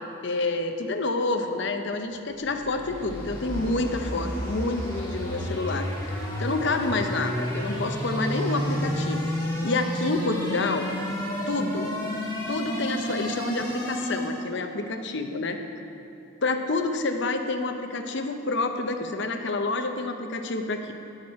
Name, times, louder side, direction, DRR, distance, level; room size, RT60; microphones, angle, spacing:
voice 1, 0.2-5.9 6.4-9.2 9.6-10.9 11.5-11.9 12.5-15.6 16.4-20.9, left 3 dB, 55° left, 6 dB, 0.7 m, -28 dB
sound 1, 2.3-14.5, equal, 15° left, 1.7 m, -31 dB
10.5 x 9.0 x 4.3 m, 2.9 s
head